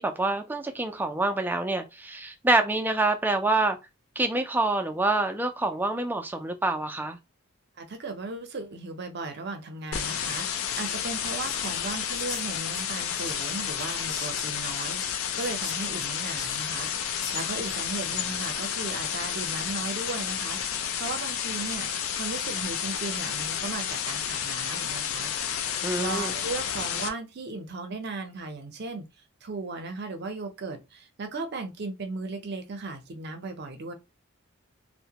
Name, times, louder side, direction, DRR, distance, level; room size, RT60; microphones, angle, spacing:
voice 1, 0.0-3.8 4.2-7.2 25.8-26.3, right 2 dB, 10° right, 0.3 m, -26 dB
voice 2, 7.8-21.9 22.2-25.3 26.0-29.1 29.4-33.9, right 3 dB, 50° right, 0.6 m, -36 dB
sound 1, 9.9-27.1, left 8 dB, 75° left, 0.4 m, -31 dB
Whispering, 10.2-17.7, left 3 dB, 55° left, 1.1 m, -43 dB
2.7 x 2.1 x 2.8 m
head